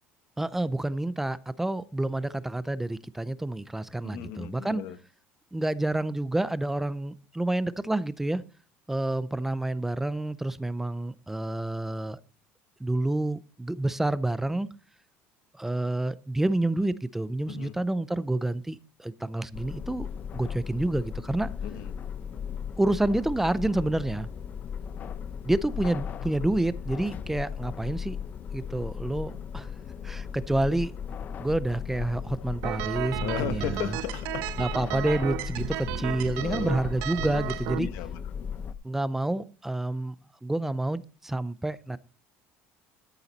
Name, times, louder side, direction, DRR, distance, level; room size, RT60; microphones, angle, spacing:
voice 1, 0.4-4.8 5.5-8.4 8.9-12.2 12.8-14.7 15.5-20.1 20.3-21.5 22.8-24.3 25.4-28.2 28.5-29.7 30.0-30.9 31.4-33.8 34.6-37.9 38.8-40.1 40.4-42.0, right 2 dB, 5° right, 16 dB, 0.5 m, -28 dB
voice 2, 4.0-5.0 17.5-17.8 21.6-21.9 33.2-34.4 34.9-35.2 36.4-36.8 37.7-38.2, left 11 dB, 70° left, 11 dB, 1.1 m, -35 dB
sound 1, 19.5-38.7, left 7 dB, 35° left, 0.6 m, -37 dB
sound 2, 32.6-37.8, right 17 dB, 70° right, 0.5 m, -33 dB
13.0 x 6.9 x 4.1 m, 0.39 s
cardioid pair, 145°, 5 cm